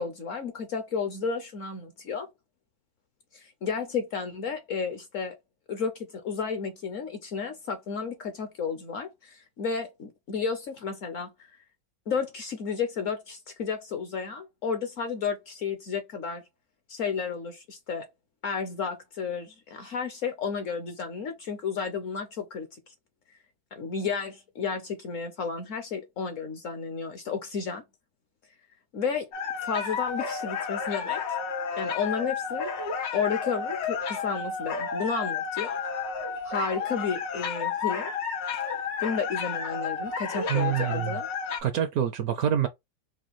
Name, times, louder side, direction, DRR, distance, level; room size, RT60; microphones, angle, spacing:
voice 1, 0.0-2.3 3.3-5.4 5.7-11.5 12.1-16.4 16.9-18.1 18.4-22.7 23.3-23.4 23.8-27.8 28.9-29.3 29.6-31.2 31.8-32.8 33.1-35.8 36.4-38.1 39.0-41.3, left 5 dB, 60° left, 0.9 m, -32 dB
sound 1, 29.3-41.6, left 6 dB, 85° left, 1.7 m, -31 dB
voice 2, 40.5-41.2 41.6-42.7, right 10 dB, 70° right, 0.9 m, -26 dB
4.8 x 2.2 x 3.0 m
omnidirectional pair, 1.9 m